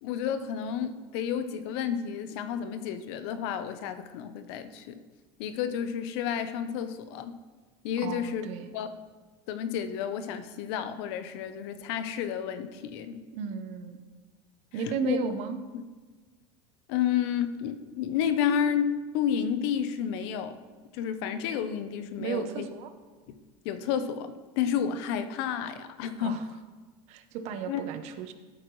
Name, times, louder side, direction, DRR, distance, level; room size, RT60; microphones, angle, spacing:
voice 1, 0.0-5.0 5.4-7.4 7.8-8.4 8.7-8.9 9.5-13.2 15.0-15.2 15.7-15.8 16.9-20.6 20.9-22.6 23.6-26.4 27.7-27.8, left 8 dB, 70° left, 10 dB, 0.8 m, -31 dB
voice 2, 8.0-8.7 13.3-14.0 14.7-15.6 22.2-22.9 26.2-26.4 27.1-28.3, right 5 dB, 55° right, 9 dB, 0.9 m, -34 dB
13.5 x 8.2 x 3.2 m, 1.3 s
supercardioid pair, 145°, 14 cm